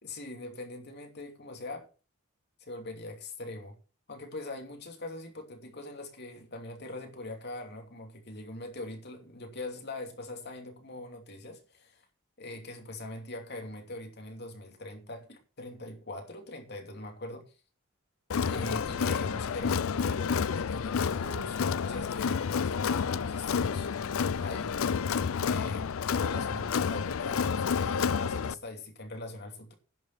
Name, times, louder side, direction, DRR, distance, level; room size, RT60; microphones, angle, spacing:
voice 1, 0.0-1.9 2.6-3.8 4.1-12.0 12.4-17.5 18.4-23.9 24.4-25.0 25.5-29.7, left 2 dB, 55° left, 2.7 m, -42 dB
Crowd, 18.3-28.5, left 6 dB, 85° left, 0.5 m, -30 dB
10.5 x 6.8 x 6.7 m
head